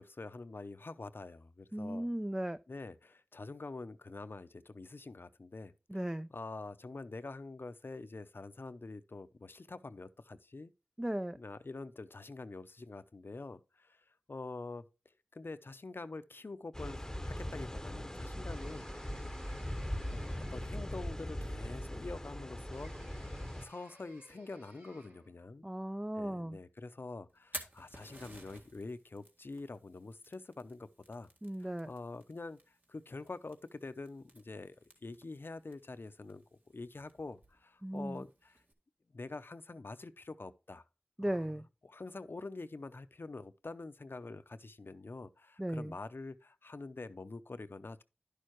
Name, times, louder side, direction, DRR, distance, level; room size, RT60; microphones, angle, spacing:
voice 1, 0.0-2.1 2.7-10.7 11.3-14.8 15.3-18.9 20.1-25.7 26.1-31.3 31.6-34.8 35.0-38.6 39.1-40.8 41.3-41.5 41.8-48.0, left 3 dB, 65° left, 0.6 m, -46 dB
voice 2, 1.7-2.6 5.9-6.3 11.0-11.4 25.6-26.6 31.4-31.9 37.8-38.2 41.2-41.6 45.6-45.9, right 1 dB, 15° right, 0.3 m, -36 dB
sound 1, 16.7-23.6, equal, 10° left, 0.8 m, -40 dB
sound 2, 18.5-21.0 22.7-25.4, right 1 dB, 65° right, 2.3 m, -60 dB
Fire, 27.3-38.7, right 1 dB, 50° right, 1.7 m, -54 dB
11.0 x 6.5 x 3.0 m
wide cardioid pair, 45°, 4 cm